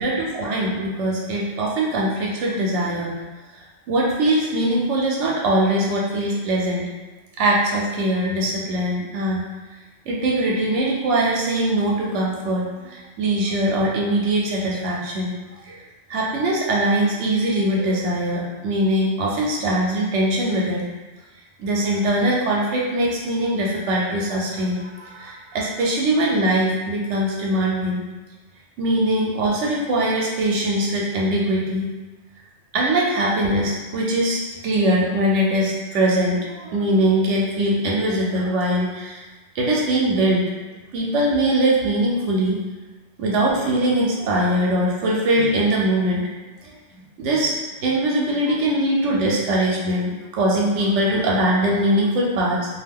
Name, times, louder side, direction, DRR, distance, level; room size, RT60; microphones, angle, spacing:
voice 1, 0.0-3.2 3.9-6.9 7.4-9.4 10.1-15.3 15.6-15.8 16.1-20.8 21.6-28.0 28.8-31.9 32.7-39.2 39.6-42.6 43.2-46.2 47.2-47.5 47.8-52.6, right 1 dB, 85° right, -3 dB, 0.9 m, -21 dB
2.4 x 2.2 x 3.4 m, 1.2 s
omnidirectional pair, 1.2 m